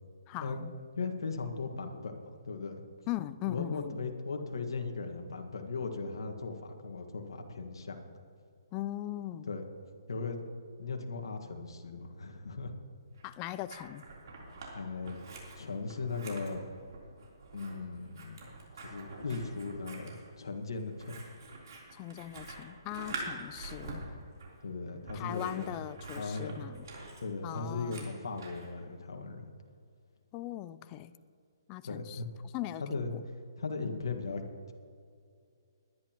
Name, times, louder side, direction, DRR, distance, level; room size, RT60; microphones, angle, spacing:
voice 1, 0.3-0.7 3.1-4.0 8.7-9.5 13.2-14.0 21.9-24.0 25.1-26.9 27.4-28.1 30.3-31.2 31.7-32.2 32.5-33.0, left 14 dB, 25° left, 14 dB, 0.4 m, -39 dB
voice 2, 0.9-2.7 3.5-8.0 9.5-9.6 10.1-10.4 10.8-12.7 14.7-15.2 15.5-16.6 17.5-18.4 18.8-21.2 24.6-25.8 26.1-26.6 27.2-29.5 31.8-32.3 32.8-33.2 33.6-34.4, left 4 dB, 80° left, 4 dB, 1.7 m, -38 dB
Scissors, 13.2-14.7 15.0-28.7, right 3 dB, 55° right, 3.6 m, -46 dB
21.0 x 11.0 x 3.0 m, 2.3 s
hypercardioid pair, 155°, 2 cm